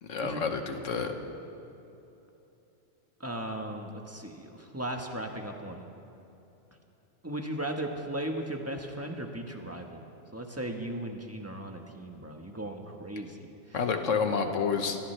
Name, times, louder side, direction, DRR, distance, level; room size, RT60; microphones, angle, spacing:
voice 1, 0.0-1.1 13.7-15.0, left 5 dB, 90° left, 6 dB, 1.5 m, -29 dB
voice 2, 3.2-5.8 7.2-10.0 10.3-13.8, right 1 dB, 10° right, 2 dB, 1.3 m, -37 dB
25.0 x 17.0 x 3.3 m, 2.9 s
omnidirectional pair, 1.3 m